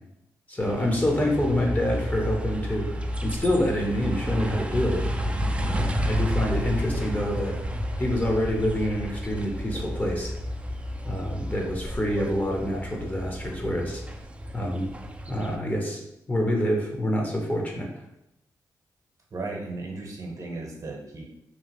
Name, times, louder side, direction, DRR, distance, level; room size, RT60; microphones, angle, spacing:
voice 1, 0.5-2.9 3.2-5.0 5.6-7.6 8.0-10.3 11.0-14.0 14.5-14.9 15.3-17.9, left 1 dB, 20° left, 0 dB, 0.7 m, -26 dB
sound 1, 0.6-15.6, equal, 15° right, 0.4 m, -31 dB
voice 2, 19.3-21.2, right 3 dB, 45° right, 0 dB, 0.8 m, -35 dB
2.8 x 2.4 x 2.9 m, 0.83 s
cardioid pair, 60°, 8 cm